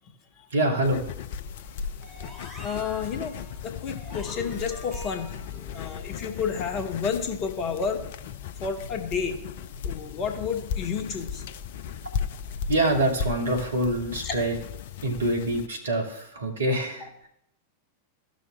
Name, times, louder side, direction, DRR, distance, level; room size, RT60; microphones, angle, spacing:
voice 1, 0.5-1.1 12.7-14.5 15.0-17.3, right 1 dB, 70° right, 1 dB, 1.4 m, -25 dB
sound 1, 0.8-15.7, left 7 dB, 55° left, 0.4 m, -36 dB
sound 2, 2.0-6.9, equal, 5° right, 2.8 m, -46 dB
voice 2, 2.6-3.4 3.6-5.3 5.7-8.0 8.6-9.4 9.8-11.4 14.2-14.3, left 6 dB, 35° left, 4 dB, 1.2 m, -30 dB
14.0 x 6.3 x 2.2 m, 0.76 s
figure-of-eight pair, 90°, 0 cm